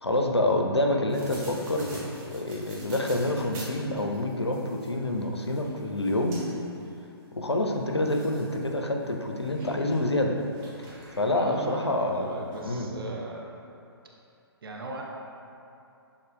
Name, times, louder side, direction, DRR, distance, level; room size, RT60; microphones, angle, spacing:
voice 1, 0.0-2.0 2.3-6.4 7.4-10.3 11.2-12.9, left 1 dB, 90° left, 2 dB, 0.5 m, -27 dB
sound 1, 1.1-6.9 7.5-7.6 8.0-8.7 9.0-11.4 12.2-12.3 12.5-12.6, right 2 dB, 20° right, 0.9 m, -45 dB
voice 2, 11.2-13.5 14.6-15.0, right 2 dB, 60° right, -1 dB, 0.5 m, -38 dB
6.4 x 3.5 x 2.2 m, 2.6 s
figure-of-eight pair, 125°, 14 cm